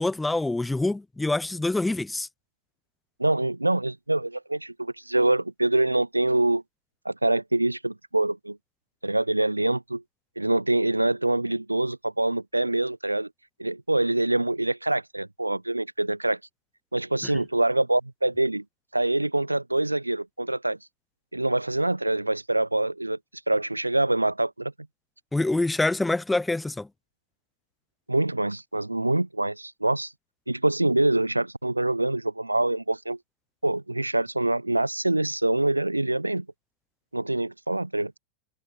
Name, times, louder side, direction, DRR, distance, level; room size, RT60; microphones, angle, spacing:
voice 1, 0.0-2.3 17.2-17.3 25.3-26.9, left 2 dB, 5° left, 0.3 m, -26 dB
voice 2, 3.2-6.6 7.0-8.6 9.0-10.0 10.4-13.3 13.6-16.4 16.9-18.6 18.9-20.8 21.3-23.2 23.5-24.7 28.1-30.1 30.5-33.2 33.6-36.5 37.1-38.1, right 2 dB, 85° right, 0.5 m, -25 dB
figure-of-eight pair, 90°, 0 cm